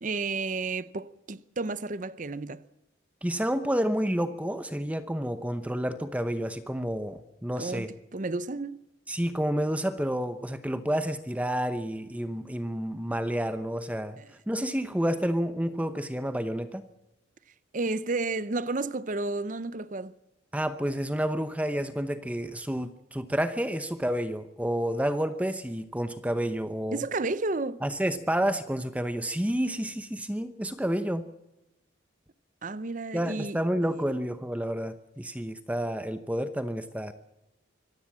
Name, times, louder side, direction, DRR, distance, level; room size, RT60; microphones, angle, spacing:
voice 1, 0.0-2.6 7.6-7.9 8.1-8.8 14.2-14.3 17.7-20.1 26.9-27.8 32.6-33.6, right 3 dB, 40° right, 0.7 m, -31 dB
voice 2, 3.2-7.9 9.1-16.9 20.5-27.0 27.8-31.3 33.1-37.1, equal, 5° right, 0.8 m, -30 dB
25.0 x 16.0 x 7.4 m
head